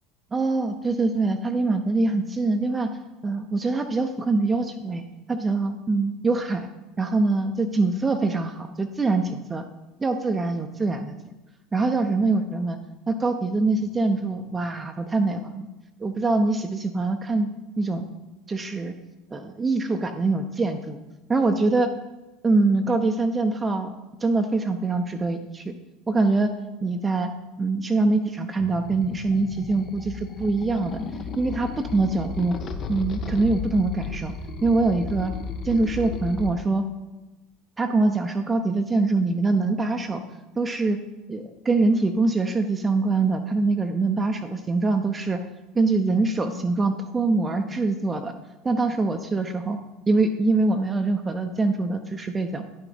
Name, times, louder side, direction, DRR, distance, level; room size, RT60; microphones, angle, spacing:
voice 1, 0.3-2.9 3.2-5.0 5.3-6.7 7.0-9.6 10.0-11.2 11.7-12.8 13.1-15.7 16.0-17.5 17.8-18.1 18.5-18.9 19.3-21.0 21.3-21.9 22.4-23.9 24.2-25.7 26.1-26.5 26.8-27.3 27.6-31.0 31.4-32.6 32.9-34.3 34.6-35.3 35.6-36.8 37.8-40.2 40.6-41.0 41.3-45.4 45.7-48.3 48.6-49.8 50.1-52.6, right 3 dB, 20° right, 5 dB, 0.6 m, -24 dB
sound 1, 28.6-36.5, left 5 dB, 40° left, 0.8 m, -34 dB
10.5 x 5.7 x 3.9 m, 1.1 s
figure-of-eight pair, 70°, 0 cm